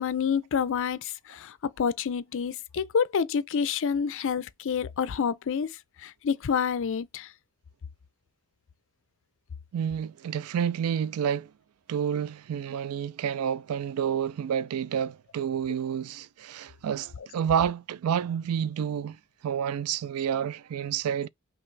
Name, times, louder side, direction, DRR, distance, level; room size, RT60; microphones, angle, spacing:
voice 1, 0.0-7.3, left 6 dB, 60° left, 0.4 m, -28 dB
voice 2, 9.7-11.5 11.9-19.2 19.4-21.3, right 8 dB, 85° right, 0.3 m, -29 dB
5.7 x 2.4 x 3.2 m
head